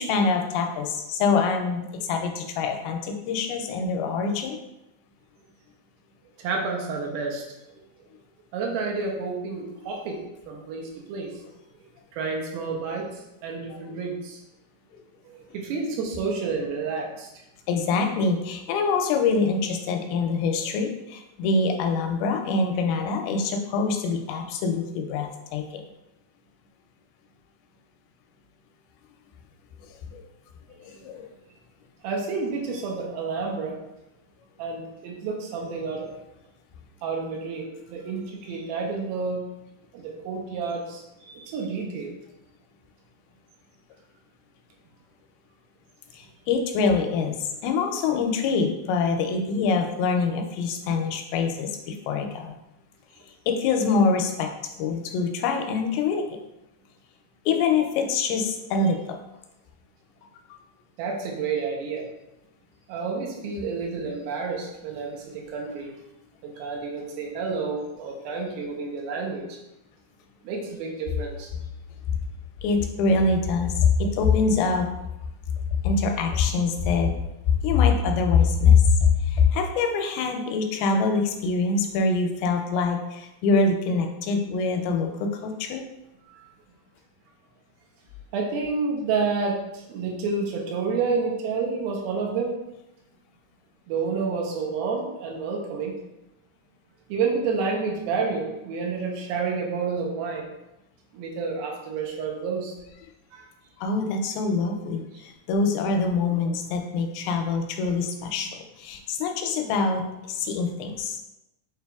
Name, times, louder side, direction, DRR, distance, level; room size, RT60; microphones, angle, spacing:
voice 1, 0.0-4.6 14.9-15.0 17.7-25.8 29.8-30.2 30.7-31.3 46.1-52.6 53.5-54.5 54.8-56.3 57.5-59.0 72.6-74.9 75.8-77.1 77.6-85.8 103.8-110.0 110.3-111.2, left 4 dB, 85° left, 4 dB, 2.4 m, -24 dB
voice 2, 6.4-7.5 8.5-11.4 12.1-14.4 15.3-17.3 32.0-33.8 34.6-36.1 37.0-39.4 39.9-42.2 61.0-62.1 62.9-65.9 66.4-69.6 70.4-71.5 86.3-86.5 88.3-92.5 93.9-96.0 97.1-100.5 101.1-102.7 103.3-103.5, right 4 dB, 85° right, 0 dB, 2.5 m, -29 dB
6.5 x 2.9 x 2.3 m, 0.92 s
omnidirectional pair, 4.3 m